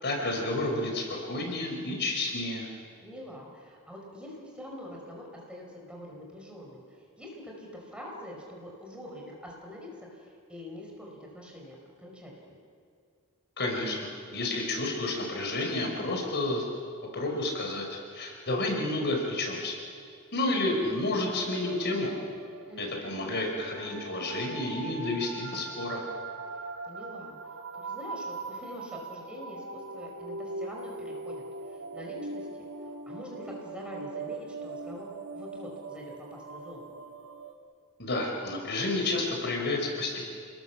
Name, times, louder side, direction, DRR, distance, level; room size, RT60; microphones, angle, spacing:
voice 1, 0.0-2.7 13.6-14.0 14.3-16.6 17.1-17.8 18.1-19.8 20.3-22.1 22.8-26.0 38.0-40.3, left 2 dB, 50° left, 1 dB, 5.4 m, -30 dB
voice 2, 3.0-12.6 22.6-23.4 26.8-27.4 27.7-32.5 33.1-36.9, left 1 dB, 5° right, -1 dB, 5.3 m, -45 dB
sound 1, 20.7-37.5, right 3 dB, 75° right, 2.0 m, -41 dB
29.0 x 20.5 x 7.3 m, 2.2 s
head